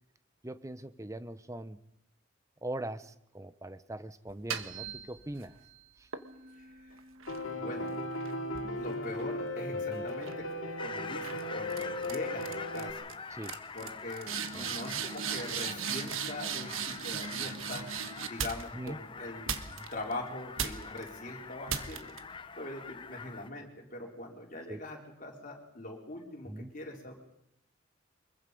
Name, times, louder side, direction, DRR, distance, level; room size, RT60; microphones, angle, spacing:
voice 1, 0.4-1.8 2.6-5.5 6.0-6.1 9.7-10.0 13.3-13.6 14.5-14.8 18.7-19.0 19.8-19.9 24.7-24.8 26.5-26.7, right 1 dB, 15° right, 13 dB, 0.8 m, -41 dB
sound 1, 4.3-5.5 6.1-9.7 10.1-10.5 11.2-11.4 11.7-12.2 12.4-12.8 13.1-13.2 13.4-18.9 19.5-20.1 20.6-21.0 21.7-22.2, right 7 dB, 85° right, 1.4 m, -38 dB
voice 2, 6.5-7.0 7.5-7.9 8.7-10.5 10.8-13.0 13.7-17.9 18.3-27.1, left 1 dB, 40° left, 0 dB, 4.4 m, -42 dB
Piano, 7.3-12.9, left 1 dB, 80° left, 2.7 m, -36 dB
sound 2, 10.8-23.5, left 5 dB, 25° left, 0.7 m, -45 dB
24.5 x 22.0 x 5.3 m, 0.82 s
head